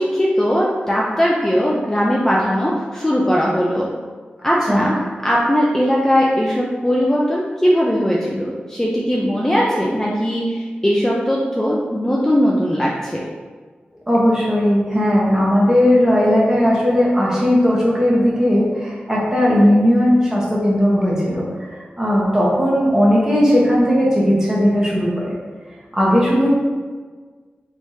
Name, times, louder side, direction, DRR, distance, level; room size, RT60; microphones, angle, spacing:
voice 1, 0.0-3.9 4.4-5.0 5.2-13.2, equal, 15° left, -4 dB, 0.4 m, -19 dB
voice 2, 14.1-21.7 22.0-25.3 25.9-26.5, equal, 15° right, -6 dB, 1.0 m, -16 dB
3.4 x 3.0 x 2.7 m, 1.5 s
wide cardioid pair, 80°, 4 cm